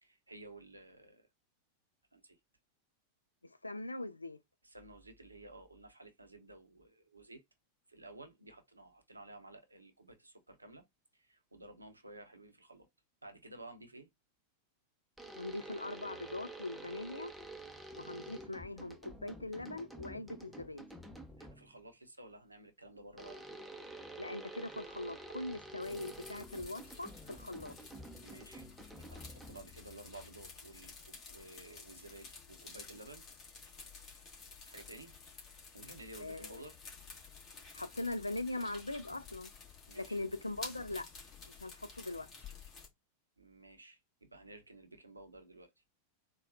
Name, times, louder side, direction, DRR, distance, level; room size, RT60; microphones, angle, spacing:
voice 1, 0.0-1.3 2.1-2.4 4.6-7.4 7.9-10.8 11.1-12.9 13.2-14.1 21.4-23.4 28.2-28.7 29.1-33.2 34.7-35.1 35.7-36.8 39.9-40.2 43.4-45.8, right 2 dB, 80° right, 0.7 m, -54 dB
voice 2, 3.6-4.4 15.4-17.3 17.9-20.8 24.2-27.8 36.2-36.6 37.7-39.5 39.9-41.1 41.5-42.3, left 2 dB, 80° left, 0.3 m, -41 dB
sound 1, 15.2-21.8 23.2-29.8, right 2 dB, ahead, 0.6 m, -49 dB
sound 2, 25.8-42.9, left 4 dB, 35° left, 1.6 m, -52 dB
3.9 x 2.2 x 2.5 m
figure-of-eight pair, 90°, 0 cm